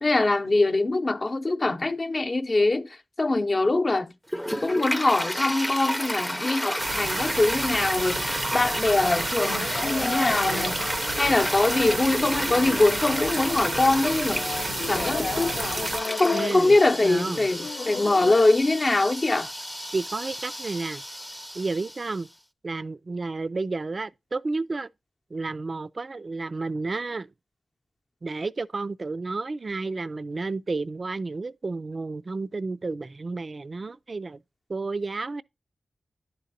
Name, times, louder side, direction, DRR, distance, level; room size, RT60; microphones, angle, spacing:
voice 1, 0.0-4.1 4.6-10.9 11.2-14.5 14.9-15.5 16.2-19.5, left 2 dB, 45° left, 0.7 m, -23 dB
Toilet flush, 4.3-22.2, equal, ahead, 0.5 m, -31 dB
sound 1, 6.8-16.0, right 4 dB, 90° right, 0.7 m, -33 dB
sound 2, 9.5-18.5, left 5 dB, 75° left, 0.4 m, -35 dB
voice 2, 16.3-16.7 17.0-17.5 19.9-21.0 21.5-22.3 22.6-24.9 25.3-27.3 28.2-34.4 34.7-35.4, right 3 dB, 50° right, 0.3 m, -31 dB
11.0 x 4.0 x 2.6 m
cardioid pair, 45°, 0 cm